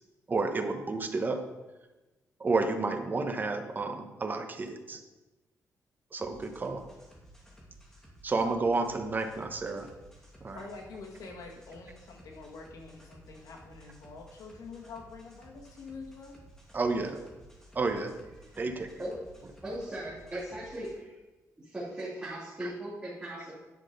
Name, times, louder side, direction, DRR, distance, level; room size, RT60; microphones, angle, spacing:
voice 1, 0.3-1.4 2.4-5.0 6.1-6.8 8.2-9.9 10.4-10.6 16.7-17.2 17.7-18.2 18.6-18.9 22.6-22.7, right 3 dB, 30° right, 6 dB, 1.0 m, -31 dB
sound 1, 6.2-21.0, right 1 dB, 10° left, 2.4 m, -55 dB
voice 2, 10.5-16.3, left 4 dB, 85° left, 0 dB, 1.8 m, -46 dB
voice 3, 19.6-21.1 21.6-23.5, right 1 dB, 15° right, -9 dB, 2.9 m, -38 dB
10.5 x 6.0 x 5.2 m, 1.1 s
cardioid pair, 115°, 6 cm